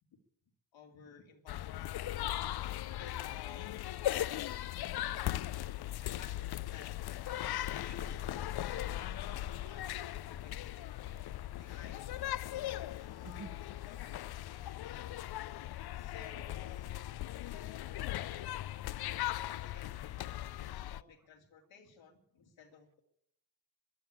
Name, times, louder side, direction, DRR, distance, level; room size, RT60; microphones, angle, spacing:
voice 1, 0.7-4.1 6.0-9.9 10.3-12.5 12.8-13.5 13.8-14.7 15.9-17.1 19.3-23.0, left 6 dB, 85° left, 2 dB, 2.5 m, -57 dB
sound 1, 1.5-21.0, left 14 dB, 60° left, 0.5 m, -39 dB
voice 2, 4.6-5.1 11.2-11.7 13.2-13.5 14.7-14.9 15.8-16.1 18.1-19.2, right 4 dB, 45° right, 9 dB, 1.5 m, -56 dB
sound 2, 7.8-11.9, left 4 dB, 45° left, 1.6 m, -50 dB
14.5 x 10.5 x 8.6 m, 0.73 s
supercardioid pair, 45°, 44 cm